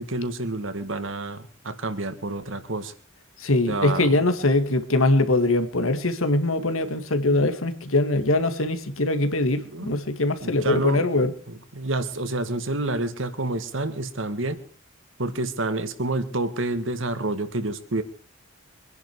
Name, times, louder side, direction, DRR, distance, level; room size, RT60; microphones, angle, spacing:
voice 1, 0.0-2.9 3.7-4.1 9.7-10.0 10.4-11.0 11.5-14.6 15.2-18.0, right 2 dB, 65° right, 10 dB, 1.9 m, -28 dB
voice 2, 3.4-11.3, left 2 dB, 85° left, 9 dB, 2.0 m, -22 dB
24.5 x 10.5 x 4.7 m, 0.40 s
head